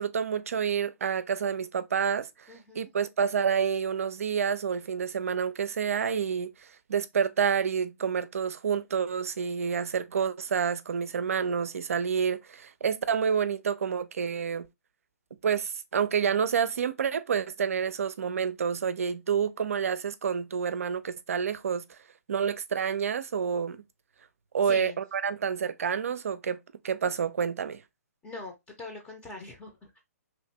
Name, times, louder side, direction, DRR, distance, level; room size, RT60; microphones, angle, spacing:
voice 1, 0.0-6.5 6.9-14.7 15.4-22.0 22.3-23.8 24.5-26.6 26.8-27.8, right 7 dB, 60° right, 0.4 m, -28 dB
voice 2, 2.5-2.9 24.6-25.0 28.2-30.0, left 3 dB, 15° left, 0.7 m, -43 dB
3.0 x 2.6 x 3.2 m
figure-of-eight pair, 125°, 8 cm